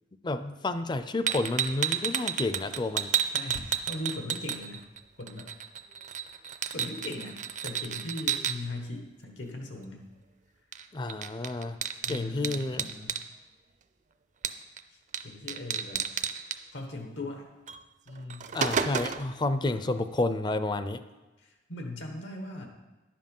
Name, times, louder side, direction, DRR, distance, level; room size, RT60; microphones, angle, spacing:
voice 1, 0.2-3.1 10.9-11.8 12.1-12.9 18.5-21.0, left 2 dB, 25° left, 11 dB, 0.5 m, -30 dB
sound 1, 1.3-5.0 5.3-8.5 10.7-10.8 11.1-13.2 14.4-14.8 15.1-15.2 15.5-16.6 17.7-17.8 18.2-19.3, right 7 dB, 40° right, 0.5 m, -31 dB
voice 2, 3.3-4.8 5.2-5.5 6.7-10.0 12.0-13.2 14.9-16.0 16.7-17.5 18.1-18.5 21.4-22.7, left 2 dB, 85° left, 3 dB, 1.4 m, -39 dB
11.0 x 7.7 x 5.4 m, 1.1 s
head